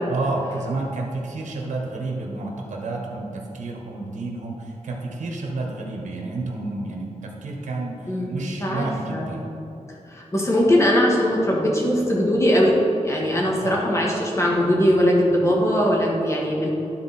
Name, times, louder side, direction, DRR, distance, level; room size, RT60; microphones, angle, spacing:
voice 1, 0.1-9.4 13.6-13.8, right 2 dB, 90° right, 0 dB, 1.3 m, -30 dB
voice 2, 8.1-9.3 10.1-16.7, equal, 25° left, -3 dB, 1.9 m, -20 dB
12.0 x 4.3 x 4.3 m, 2.9 s
cardioid pair, 80°, 12 cm